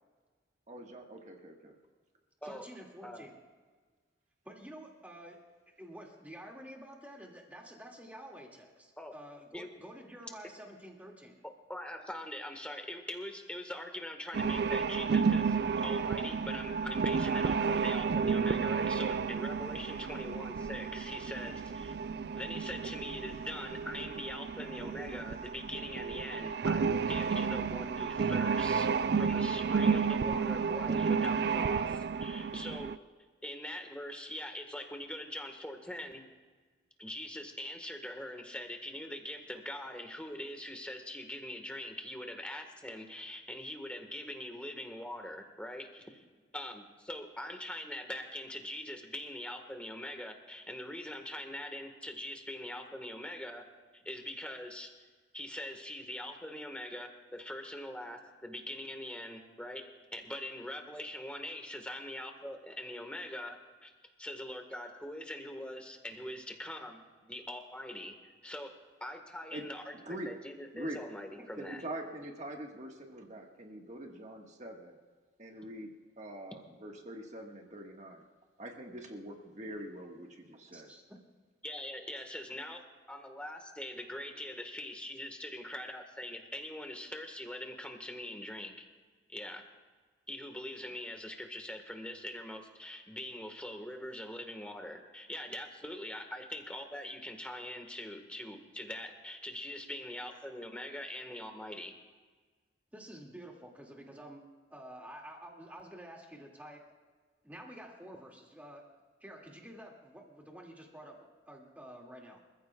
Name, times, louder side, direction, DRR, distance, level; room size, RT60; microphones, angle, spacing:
voice 1, 0.7-1.7 69.5-69.6 69.9-70.4 70.7-71.0 71.5-75.0 75.4-75.9 76.2-78.2 78.6-80.9, right 1 dB, 40° right, 2 dB, 1.5 m, -44 dB
voice 2, 2.4-3.4 4.4-5.4 5.8-11.4 71.4-71.5 80.7-81.2 102.9-104.4 104.7-106.8 107.4-108.8 109.2-112.4, right 1 dB, 10° right, 0 dB, 2.2 m, -50 dB
voice 3, 11.7-15.6 15.8-21.9 22.3-33.0 33.4-36.2 37.0-46.2 46.5-53.7 53.9-55.1 55.3-63.9 64.2-71.8 81.6-88.9 89.3-89.6 90.3-101.9, left 1 dB, 5° left, 4 dB, 1.5 m, -43 dB
sound 1, 14.3-33.0, right 5 dB, 60° right, 0.4 m, -31 dB
29.0 x 15.0 x 2.3 m, 1.5 s
head